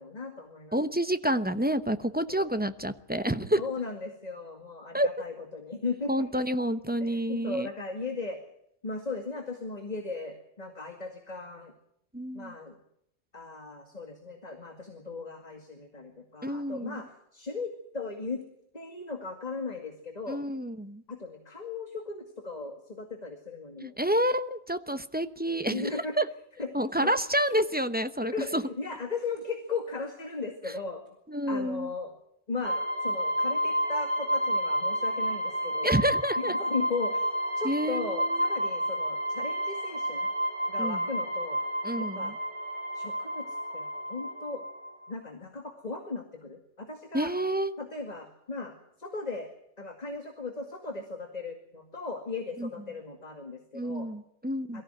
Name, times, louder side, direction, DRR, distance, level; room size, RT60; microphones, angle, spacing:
voice 1, 0.0-0.8 2.3-2.5 3.6-6.3 7.0-8.4 8.8-11.7 12.3-12.8 13.3-18.4 18.7-20.4 21.1-24.0 25.7-26.1 26.6-26.7 27.0-27.2 28.2-31.0 31.5-32.1 32.5-36.0 36.4-37.2 37.6-40.3 40.7-41.6 42.0-42.3 42.9-43.4 43.7-44.6 45.1-47.3 47.8-49.5 49.8-54.1 54.7-54.8, left 4 dB, 40° left, 4 dB, 2.3 m, -37 dB
voice 2, 0.7-3.6 4.9-5.1 6.1-7.7 12.1-12.5 16.4-17.0 20.3-21.0 23.8-25.9 26.2-26.3 26.7-28.6 31.3-31.9 35.8-36.5 37.6-38.4 40.8-41.0 41.8-42.3 47.1-47.7 52.6-52.7 53.7-54.8, equal, 10° right, 10 dB, 0.8 m, -29 dB
sound 1, 32.6-45.1, equal, 30° right, 3.3 m, -30 dB
22.5 x 15.0 x 9.1 m, 0.74 s
omnidirectional pair, 1.1 m